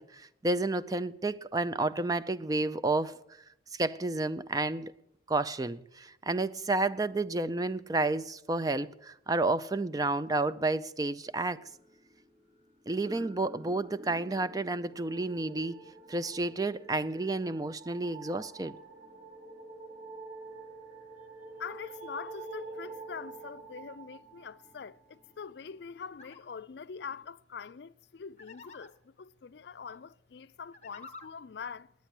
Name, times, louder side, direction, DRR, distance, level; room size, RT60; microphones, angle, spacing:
voice 1, 0.0-3.2 3.7-4.9 5.3-11.7 12.9-15.8 16.1-18.8, right 2 dB, 20° right, 0.4 m, -31 dB
sound 1, 11.2-26.4 26.9-27.3, left 1 dB, 40° right, 1.5 m, -56 dB
sound 2, 13.8-25.2, right 3 dB, 65° right, 4.2 m, -48 dB
voice 2, 21.6-31.9, left 6 dB, 65° left, 0.4 m, -44 dB
sound 3, 26.1-26.4 28.4-28.9 30.6-31.3, left 4 dB, 35° left, 1.0 m, -49 dB
10.0 x 9.3 x 9.9 m
head